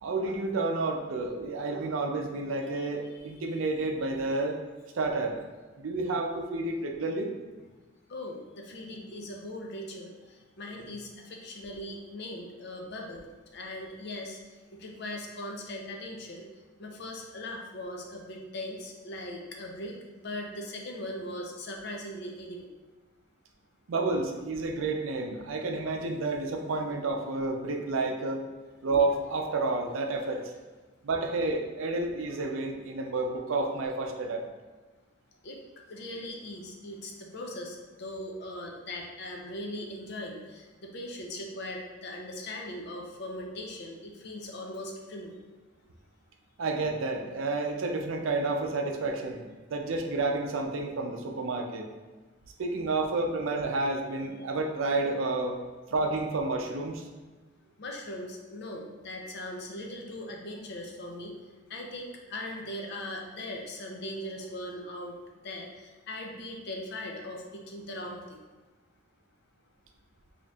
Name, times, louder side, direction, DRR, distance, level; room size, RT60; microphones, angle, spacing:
voice 1, 0.0-4.6 4.9-5.4 5.8-7.3 23.9-28.4 28.8-30.4 31.0-34.4 46.6-51.9 52.6-55.6 55.9-57.0, right 3 dB, 90° right, 3 dB, 0.5 m, -30 dB
voice 2, 8.1-13.2 13.5-16.5 16.8-22.7 35.4-35.6 35.9-40.7 40.9-45.4 57.8-61.3 61.7-65.1 65.4-68.4, left 1 dB, 60° left, 1 dB, 0.5 m, -40 dB
4.1 x 2.8 x 2.4 m, 1.3 s
head